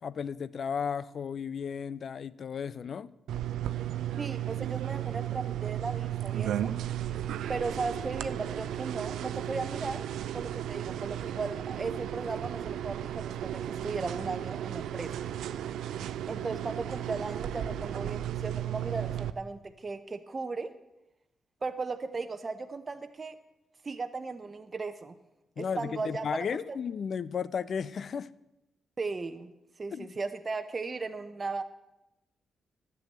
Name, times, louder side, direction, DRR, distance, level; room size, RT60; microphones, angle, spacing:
voice 1, 0.0-3.1 25.6-28.3 29.9-30.1, left 7 dB, 60° left, 0.4 m, -34 dB
sound 1, 3.3-19.3, right 11 dB, 80° right, 0.5 m, -34 dB
voice 2, 4.2-6.8 7.5-10.0 10.3-15.1 16.3-20.7 21.6-23.4 23.8-25.1 25.6-26.3 26.7-26.8 29.0-29.5 29.8-31.6, right 4 dB, 40° right, 0.7 m, -36 dB
12.0 x 7.0 x 7.6 m
hypercardioid pair, 45°, 0 cm